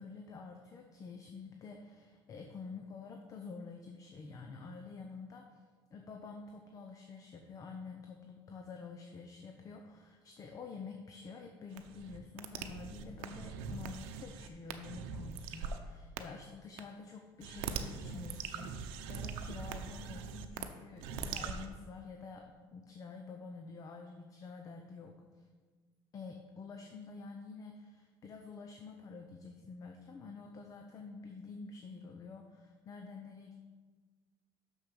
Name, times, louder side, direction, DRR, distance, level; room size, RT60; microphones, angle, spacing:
voice 1, 0.0-5.6 5.9-25.5 26.1-33.6, left 4 dB, 40° left, 3 dB, 0.7 m, -48 dB
sound 1, 11.7-15.8 16.2-16.3 16.8-16.9 17.4-20.7 21.0-21.7, right 6 dB, 90° right, 0.7 m, -42 dB
6.4 x 6.3 x 6.2 m, 1.5 s
cardioid pair, 125°, 9 cm